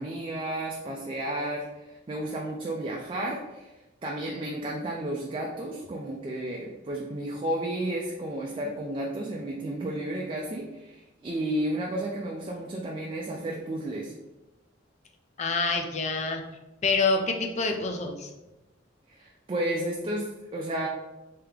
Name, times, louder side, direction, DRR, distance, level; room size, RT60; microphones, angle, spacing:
voice 1, 0.0-3.7 4.0-14.1 19.1-20.9, right 1 dB, 25° right, -1 dB, 0.4 m, -32 dB
voice 2, 15.4-16.4 16.8-18.3, left 3 dB, 35° left, 4 dB, 0.4 m, -26 dB
3.5 x 2.9 x 3.2 m, 1.0 s
head